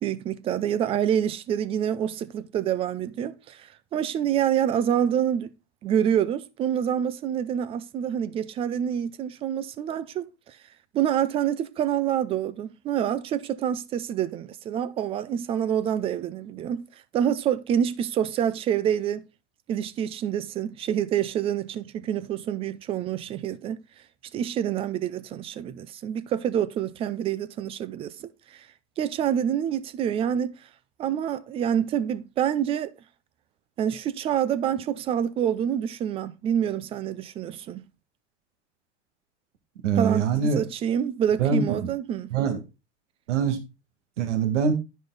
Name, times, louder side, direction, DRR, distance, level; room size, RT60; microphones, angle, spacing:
voice 1, 0.0-5.5 5.8-10.6 10.9-16.8 17.1-19.2 19.7-23.8 24.3-28.7 29.0-30.5 31.0-32.9 33.8-37.8 40.0-42.3, right 9 dB, 15° right, 0.3 m, -27 dB
voice 2, 39.8-40.6 41.4-41.8 42.3-42.6 43.3-43.6 44.2-44.7, right 6 dB, 85° right, 1.8 m, -23 dB
10.5 x 5.2 x 3.9 m
supercardioid pair, 135°, 35 cm